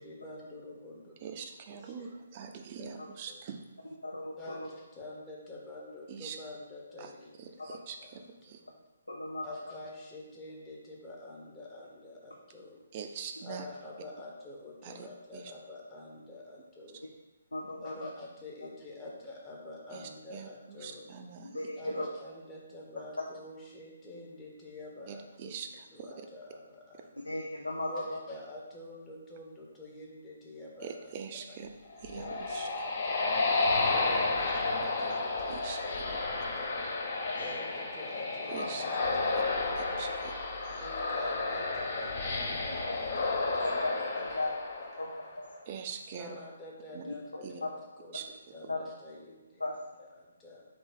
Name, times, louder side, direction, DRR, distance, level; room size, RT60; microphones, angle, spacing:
voice 1, 0.0-3.5 4.4-8.7 9.4-12.8 13.4-17.1 17.8-21.1 21.8-25.7 25.9-27.1 27.9-32.4 32.6-33.3 34.0-36.7 37.4-40.1 40.7-43.8 44.8-45.0 46.1-47.7 48.0-48.2 48.5-50.6, left 2 dB, 15° left, -4 dB, 1.0 m, -48 dB
voice 2, 1.2-3.6 6.1-6.4 7.0-7.1 7.4-8.2 8.5-8.6 12.9-13.6 14.8-15.1 15.3-15.5 19.9-20.0 20.3-21.6 25.1-25.7 26.0-26.1 30.8-31.7 32.0-32.7 35.5-35.8 38.5-38.9 40.0-40.3 45.7-46.4 46.9-47.0 47.4-47.5 48.1-48.3, right 7 dB, 35° right, 5 dB, 0.4 m, -43 dB
voice 3, 4.0-4.7 7.6-7.8 9.1-9.6 17.5-18.1 21.4-22.1 27.2-28.2 32.2-32.4 33.9-34.3 37.2-37.7 38.6-38.7 43.6-44.5 45.0-45.5 47.1-47.2 47.6-47.7 48.7-48.8 49.6-49.8, left 2 dB, 80° left, 0 dB, 0.5 m, -36 dB
sound 1, 31.9-45.4, left 3 dB, 40° left, 0.7 m, -32 dB
3.7 x 3.0 x 4.1 m, 1.1 s
figure-of-eight pair, 140°, 0 cm